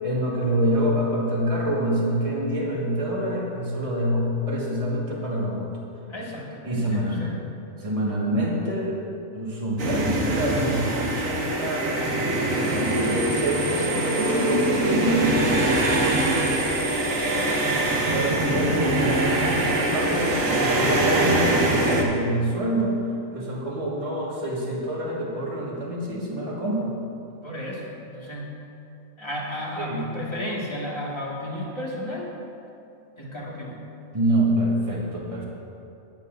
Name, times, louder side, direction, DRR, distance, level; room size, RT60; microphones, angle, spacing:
voice 1, 0.0-5.7 6.6-7.3 7.8-9.0 9.3-12.0 12.7-15.4 18.1-23.0 23.3-27.0 29.8-30.1 34.1-35.5, right 1 dB, 25° right, -4 dB, 1.7 m, -26 dB
voice 2, 6.1-7.4 16.2-17.9 27.4-28.5 29.2-32.3 33.2-33.8, left 1 dB, 20° left, -4 dB, 1.8 m, -34 dB
sound 1, 9.8-22.0, right 1 dB, 75° right, 1.7 m, -23 dB
21.0 x 8.3 x 2.6 m, 2.7 s
omnidirectional pair, 1.4 m